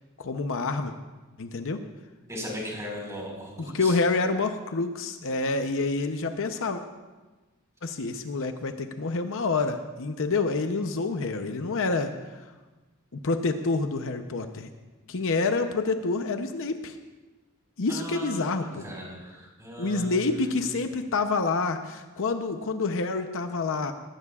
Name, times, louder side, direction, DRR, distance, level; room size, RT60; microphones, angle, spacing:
voice 1, 0.2-0.9 1.4-1.8 3.6-6.8 7.8-12.1 13.2-14.7 15.1-17.0 17.8-18.9 19.8-23.9, left 3 dB, 65° left, 7 dB, 0.7 m, -27 dB
voice 2, 2.3-4.0 17.9-20.5, equal, 15° right, -2 dB, 4.8 m, -38 dB
20.5 x 16.5 x 2.4 m, 1.2 s
head